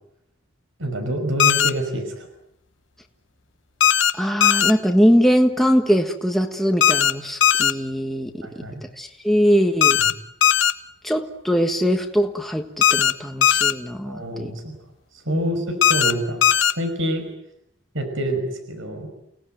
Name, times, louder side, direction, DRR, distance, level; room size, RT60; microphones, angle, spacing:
voice 1, 0.8-2.3 8.4-8.8 14.1-14.7 15.1-16.4 16.7-17.3 17.9-19.1, right 1 dB, 90° right, 5 dB, 5.6 m, -27 dB
sound 1, 1.4-1.7 3.8-4.1 4.4-4.7 6.8-7.1 7.4-7.7 9.8-10.1 10.4-10.7 12.8-13.1 13.4-13.7 15.8-16.1 16.4-16.7, left 10 dB, 75° left, 1.2 m, -17 dB
voice 2, 4.1-8.3 8.8-10.0 11.0-14.5 15.3-15.6, equal, ahead, 3 dB, 1.5 m, -21 dB
29.5 x 18.5 x 9.3 m, 0.79 s
head